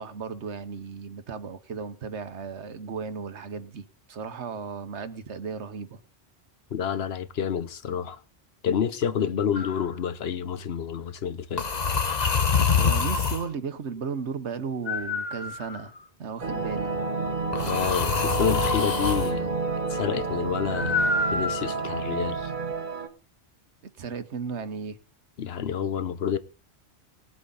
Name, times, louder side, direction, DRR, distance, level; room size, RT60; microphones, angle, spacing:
voice 1, 0.0-6.0 12.7-15.9 16.2-17.0 24.0-25.0, right 5 dB, 85° right, 1.3 m, -35 dB
voice 2, 6.7-8.2 8.6-11.7 17.6-19.5 19.9-22.5 25.4-26.4, left 8 dB, 65° left, 1.1 m, -29 dB
sound 1, 9.5-9.8 11.6-13.5 14.9-16.0 17.5-19.3 20.7-21.9, left 5 dB, 40° left, 1.0 m, -26 dB
sound 2, 16.4-23.1, right 3 dB, 45° right, 1.5 m, -30 dB
20.0 x 7.7 x 3.9 m
omnidirectional pair, 1.1 m